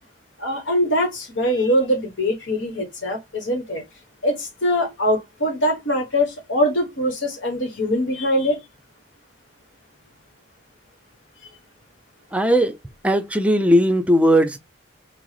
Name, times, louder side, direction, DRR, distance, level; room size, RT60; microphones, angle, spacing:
voice 1, 0.4-3.8 4.2-8.6, equal, 70° left, 1.1 m, -22 dB
voice 2, 12.3-12.8 13.0-14.6, equal, 5° right, 0.5 m, -17 dB
6.0 x 2.0 x 3.2 m
head